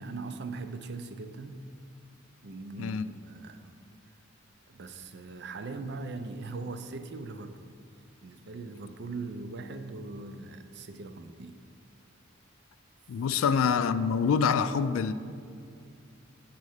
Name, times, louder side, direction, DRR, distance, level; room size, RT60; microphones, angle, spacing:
voice 1, 0.0-1.7 2.4-3.7 4.7-7.7 8.2-11.6 13.3-13.4, right 3 dB, 55° right, 0.5 m, -40 dB
voice 2, 13.1-15.1, left 6 dB, 75° left, 0.3 m, -26 dB
8.3 x 4.3 x 6.4 m
head